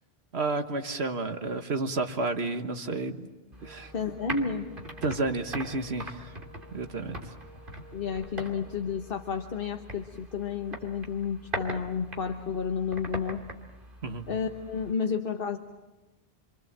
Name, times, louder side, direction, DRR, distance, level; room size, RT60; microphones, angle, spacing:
voice 1, 0.3-3.2 3.6-3.9 5.0-6.3 6.7-7.3 14.0-14.3, right 3 dB, 90° right, 7 dB, 1.8 m, -31 dB
sound 1, 3.5-14.9, right 1 dB, 55° right, 2.9 m, -42 dB
Wind instrument woodwind instrument, 3.6-9.3, left 2 dB, 15° left, 5.6 m, -53 dB
voice 2, 3.9-4.7 7.9-13.4 14.3-15.6, left 6 dB, 60° left, 5 dB, 1.4 m, -31 dB
28.0 x 25.5 x 7.6 m, 1.1 s
omnidirectional pair, 1.1 m